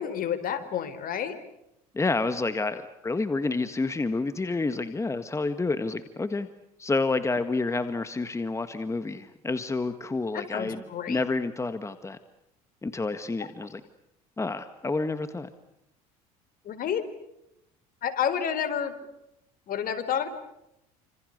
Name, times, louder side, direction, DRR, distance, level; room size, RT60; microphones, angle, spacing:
voice 1, 0.0-1.4 10.3-11.2 16.6-17.1 18.0-19.0 19.7-20.3, left 8 dB, 50° left, 11 dB, 4.3 m, -30 dB
voice 2, 1.9-6.5 6.8-10.8 11.1-12.2 12.8-13.8 14.4-15.5, left 3 dB, 15° left, 10 dB, 1.7 m, -29 dB
29.0 x 27.0 x 6.7 m, 0.83 s
supercardioid pair, 90°, 18 cm